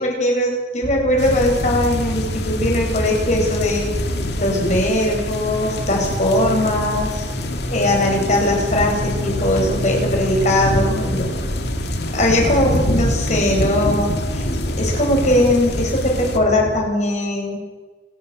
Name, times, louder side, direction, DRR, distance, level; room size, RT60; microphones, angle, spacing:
voice 1, 0.0-3.9 4.4-7.2 7.7-11.3 12.1-14.5 14.8-17.6, left 1 dB, 40° left, 0 dB, 7.5 m, -20 dB
sound 1, 0.8-16.8, left 1 dB, 75° right, 3.5 m, -31 dB
sound 2, 1.2-16.4, left 1 dB, 65° left, 2.7 m, -25 dB
29.5 x 11.5 x 9.7 m, 1.3 s
head